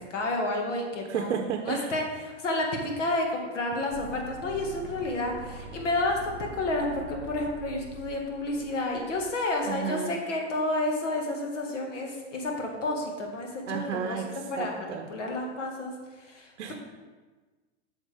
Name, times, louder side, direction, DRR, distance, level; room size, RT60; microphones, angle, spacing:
voice 1, 0.0-1.3 1.7-16.8, left 2 dB, 85° left, 1 dB, 1.9 m, -30 dB
voice 2, 1.1-1.9 9.6-10.2 13.7-15.1 16.6-16.7, right 7 dB, 85° right, 4 dB, 0.8 m, -32 dB
sound 1, 3.9-9.9, right 3 dB, 30° right, 0.5 m, -44 dB
9.0 x 6.0 x 3.5 m, 1.3 s
hypercardioid pair, 135°, 36 cm